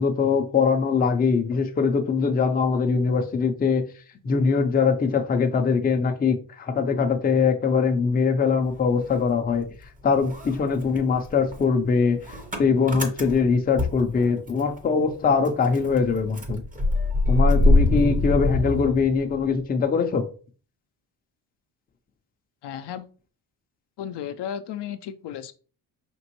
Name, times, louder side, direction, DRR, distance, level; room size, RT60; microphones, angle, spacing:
voice 1, 0.0-3.8 4.2-9.7 10.0-16.6 17.3-20.2, left 5 dB, 20° left, 0.5 m, -22 dB
Motor vehicle (road) / Engine starting, 8.6-9.8 10.1-14.8 15.1-15.2 15.4-19.6, left 2 dB, 20° right, 0.7 m, -24 dB
voice 2, 22.6-23.1 24.0-25.5, left 9 dB, 70° left, 0.5 m, -34 dB
5.2 x 3.0 x 3.0 m
cardioid pair, 140°, 44 cm